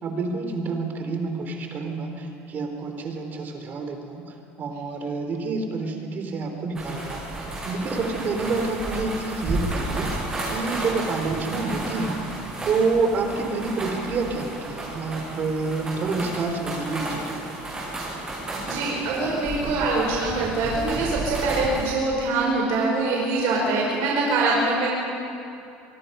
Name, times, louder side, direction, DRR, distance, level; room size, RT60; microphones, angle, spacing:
voice 1, 0.0-12.2 12.6-17.6, right 3 dB, 40° right, 4 dB, 3.5 m, -28 dB
sound 1, 6.7-21.9, right 2 dB, 15° right, 6.3 m, -32 dB
voice 2, 18.6-24.9, right 3 dB, 70° right, -3 dB, 5.1 m, -24 dB
24.0 x 24.0 x 5.6 m, 2.6 s
cardioid pair, 130°, 5 cm